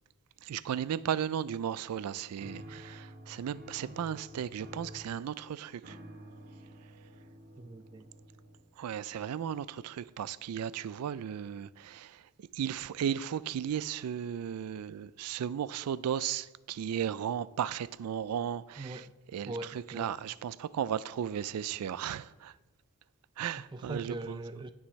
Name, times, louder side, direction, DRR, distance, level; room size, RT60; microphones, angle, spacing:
voice 1, 0.4-6.0 8.8-22.5 23.4-24.4, right 9 dB, 90° right, 0.3 m, -35 dB
sound 1, 2.4-8.9, equal, 45° right, 1.1 m, -50 dB
voice 2, 7.6-8.1 18.8-19.1 19.5-20.1 23.7-24.7, right 2 dB, 20° right, 0.4 m, -41 dB
17.5 x 6.1 x 3.2 m
head